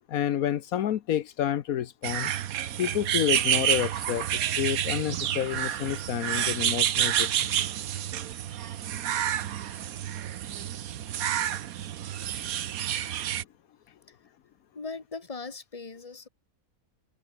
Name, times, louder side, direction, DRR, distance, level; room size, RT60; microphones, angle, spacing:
voice 1, 0.1-2.3 2.8-4.3 4.6-7.7, left 10 dB, 80° left, 1.3 m, -29 dB
sound 1, 2.0-13.4, right 11 dB, 80° right, 1.3 m, -29 dB
voice 2, 14.7-16.3, left 4 dB, 25° left, 1.7 m, -39 dB
omnidirectional pair, 1.5 m